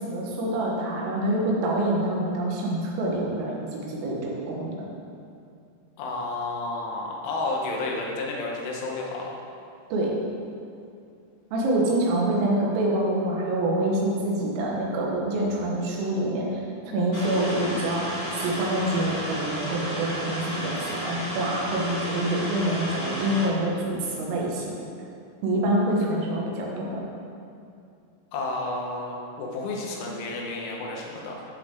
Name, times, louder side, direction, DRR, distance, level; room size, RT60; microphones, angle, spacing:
voice 1, 0.0-4.9 9.9-10.2 11.5-24.7 25.4-27.1, right 1 dB, 90° right, -3 dB, 4.0 m, -26 dB
voice 2, 6.0-9.3 28.3-31.5, left 2 dB, 75° left, -1 dB, 3.5 m, -31 dB
sound 1, 17.1-23.4, equal, 55° left, 1.6 m, -32 dB
13.5 x 5.5 x 3.8 m, 2.5 s
omnidirectional pair, 5.8 m